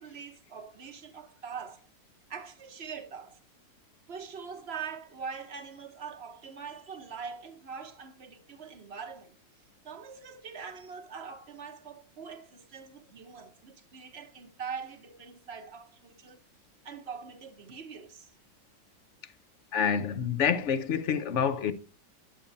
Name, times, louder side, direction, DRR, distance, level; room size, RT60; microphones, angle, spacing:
voice 1, 0.0-1.9 2.3-3.4 4.1-9.4 9.8-16.4 16.8-18.3, right 6 dB, 40° right, 1.0 m, -43 dB
voice 2, 19.7-21.7, left 7 dB, 50° left, 0.9 m, -27 dB
10.0 x 8.6 x 2.7 m
omnidirectional pair, 2.0 m